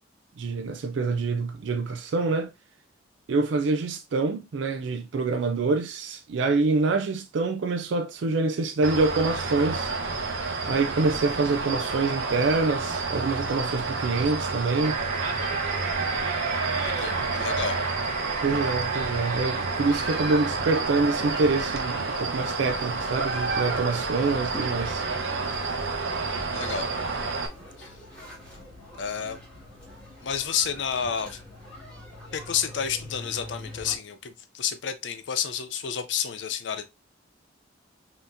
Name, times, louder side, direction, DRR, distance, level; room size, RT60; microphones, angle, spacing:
voice 1, 0.4-2.5 3.3-9.9 10.7-15.0 18.4-25.1, right 3 dB, 70° right, 0.4 m, -26 dB
sound 1, 8.8-27.5, right 4 dB, 90° right, 0.9 m, -29 dB
sound 2, 14.8-23.0, right 4 dB, 40° right, 1.0 m, -38 dB
voice 2, 16.8-17.8 26.5-26.9 27.8-27.9 29.0-29.4 30.2-31.4 32.3-36.9, left 8 dB, 65° left, 0.5 m, -30 dB
sound 3, 19.6-34.0, left 1 dB, 5° left, 2.1 m, -43 dB
5.5 x 2.8 x 2.6 m
head